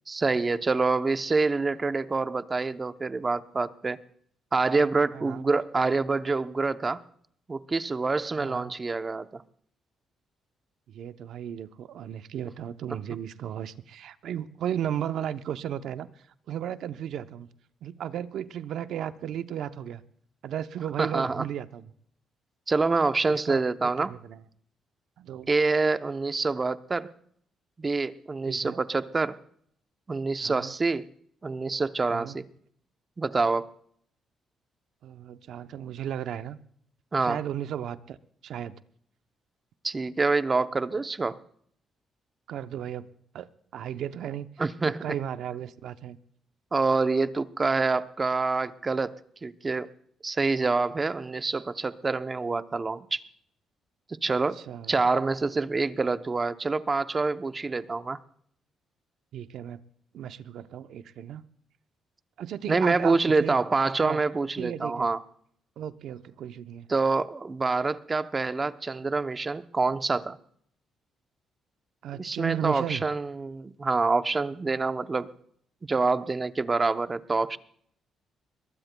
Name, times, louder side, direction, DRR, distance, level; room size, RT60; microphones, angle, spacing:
voice 1, 0.1-4.0 4.5-7.0 7.5-9.4 21.0-21.4 22.7-24.1 25.5-27.1 27.8-29.4 30.1-31.1 31.4-32.5 33.2-33.7 37.1-37.4 39.8-41.4 44.6-45.0 46.7-49.2 49.4-49.9 50.2-53.2 54.2-54.6 54.9-58.2 62.7-65.2 66.9-70.4 72.2-75.3 75.8-77.6, right 3 dB, 30° right, 12 dB, 0.7 m, -26 dB
voice 2, 8.4-8.7 10.9-16.1 16.5-17.5 17.8-20.0 20.4-21.9 23.3-23.6 24.0-24.4 25.2-25.5 28.5-28.8 30.4-30.7 32.1-32.4 35.0-36.6 37.2-38.2 38.4-38.8 42.5-43.1 43.3-44.5 44.8-46.2 54.3-55.0 59.3-59.8 60.1-61.4 62.4-63.6 64.0-64.2 64.6-65.1 65.8-66.9 72.0-73.0, right 10 dB, 75° right, 12 dB, 0.7 m, -35 dB
22.0 x 19.0 x 2.2 m, 0.64 s
cardioid pair, 90°, 0 cm